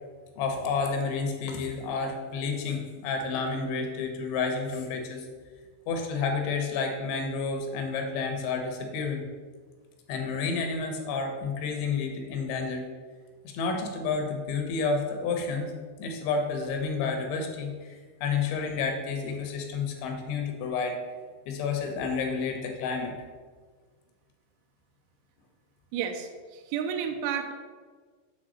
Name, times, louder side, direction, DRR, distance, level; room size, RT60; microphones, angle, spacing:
voice 1, 0.4-5.3 5.9-9.2 10.1-12.9 13.4-15.7 16.0-21.0 21.5-23.1, left 4 dB, 80° left, 4 dB, 3.1 m, -30 dB
voice 2, 25.9-27.5, right 8 dB, 85° right, 4 dB, 3.0 m, -31 dB
7.5 x 4.3 x 6.3 m, 1.5 s
omnidirectional pair, 5.5 m